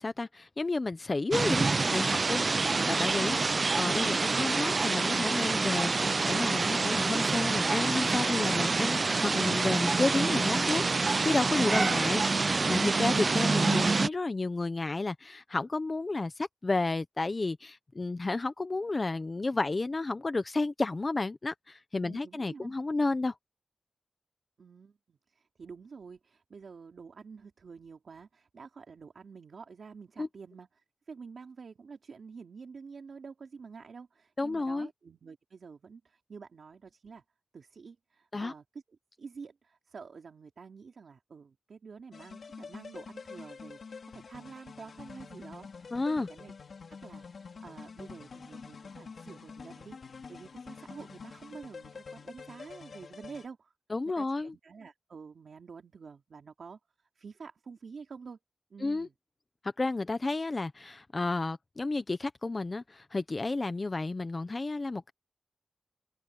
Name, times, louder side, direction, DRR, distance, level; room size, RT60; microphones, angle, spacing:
voice 1, 0.0-1.7 1.9-23.3 30.2-30.3 34.4-34.9 38.3-38.5 45.9-46.3 53.9-54.5 58.8-59.1 59.6-65.1, left 3 dB, 35° left, 0.8 m, -31 dB
sound 1, 1.3-14.1, right 3 dB, 45° right, 0.4 m, -27 dB
voice 2, 22.0-22.7 24.6-37.2 37.5-38.8 39.2-44.0 44.3-46.5 46.9-53.7 54.0-58.4 58.7-59.1, right 5 dB, 80° right, 3.1 m, -48 dB
sound 2, 42.1-53.5, left 5 dB, 75° left, 3.5 m, -47 dB
open air
wide cardioid pair, 120°, 0 cm